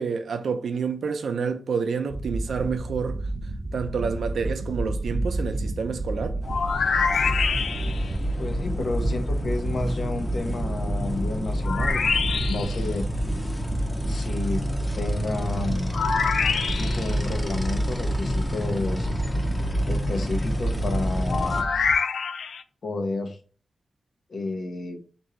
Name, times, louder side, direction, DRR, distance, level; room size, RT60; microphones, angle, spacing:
voice 1, 0.0-3.3 3.7-6.4, right 5 dB, 85° right, 0.5 m, -28 dB
sound 1, 2.1-21.9, right 2 dB, 30° right, 0.6 m, -32 dB
sound 2, 6.4-21.6, equal, 15° left, 0.7 m, -28 dB
sound 3, 6.5-8.1 11.6-12.8 15.9-17.1 21.3-22.6, left 5 dB, 90° left, 0.3 m, -25 dB
voice 2, 8.4-12.1 12.5-13.1 14.1-14.6 14.9-16.0 16.8-19.1 19.9-21.7 22.8-23.4 24.3-25.0, left 3 dB, 65° left, 0.8 m, -31 dB
3.7 x 2.7 x 4.3 m
wide cardioid pair, 105°, 0 cm